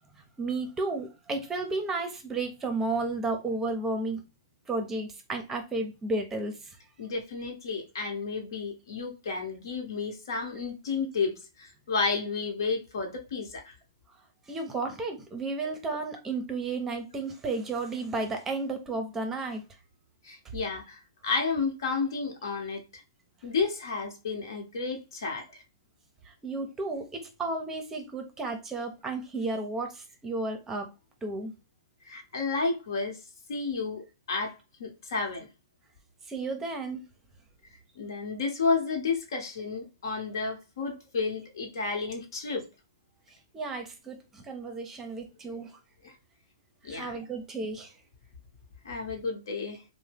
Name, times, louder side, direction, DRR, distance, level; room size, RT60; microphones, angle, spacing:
voice 1, 0.4-4.2 4.7-6.8 14.5-19.6 26.3-30.9 31.2-31.5 36.3-37.0 43.5-45.7 46.8-48.0, right 3 dB, 15° right, 0.6 m, -33 dB
voice 2, 7.0-13.7 20.2-23.0 23.4-25.6 32.1-33.2 33.5-35.5 38.0-42.6 46.0-46.1 46.8-47.1 48.8-49.8, left 4 dB, 70° left, 1.0 m, -32 dB
2.7 x 2.1 x 3.3 m
hypercardioid pair, 130°, 2 cm